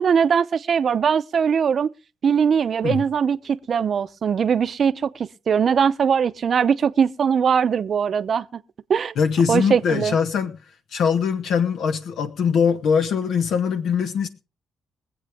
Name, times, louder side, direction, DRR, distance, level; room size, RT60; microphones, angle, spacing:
voice 1, 0.0-1.9 2.2-8.6 8.9-9.2 9.5-10.2, right 7 dB, 50° right, 0.7 m, -21 dB
voice 2, 9.2-10.5 10.9-14.3, left 6 dB, 70° left, 1.0 m, -22 dB
23.5 x 8.0 x 3.5 m
cardioid pair, 90°, 0 cm